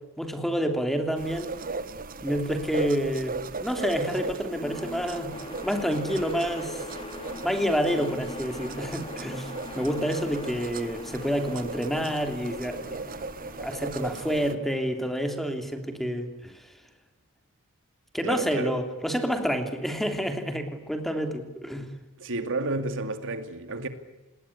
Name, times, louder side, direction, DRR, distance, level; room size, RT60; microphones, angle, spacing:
voice 1, 0.2-1.5 2.2-5.3 5.6-6.9 7.4-16.6 18.1-21.9, equal, ahead, 3.1 m, -29 dB
sound 1, 1.1-14.5, right 3 dB, 40° right, 1.4 m, -37 dB
sound 2, 4.1-16.3, left 2 dB, 25° left, 3.3 m, -43 dB
voice 2, 18.2-18.8 22.2-23.9, right 2 dB, 60° right, 2.4 m, -31 dB
28.5 x 20.0 x 9.9 m
head